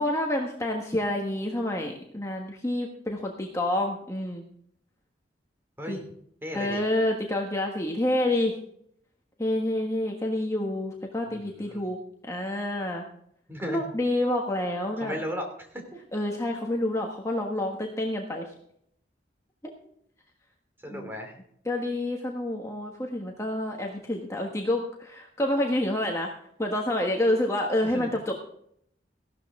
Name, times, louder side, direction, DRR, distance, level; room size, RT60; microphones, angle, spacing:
voice 1, 0.0-4.4 5.9-6.0 6.5-8.5 9.4-12.0 12.2-13.1 13.7-15.1 16.1-18.4 20.9-21.1 21.6-26.3 26.6-28.4, left 1 dB, 15° left, 1 dB, 1.4 m, -28 dB
voice 2, 6.4-6.8 11.6-11.8 13.5-13.8 15.0-16.0 20.8-21.4 27.8-28.1, equal, 10° right, 3 dB, 2.7 m, -36 dB
15.5 x 12.5 x 3.7 m, 0.69 s
head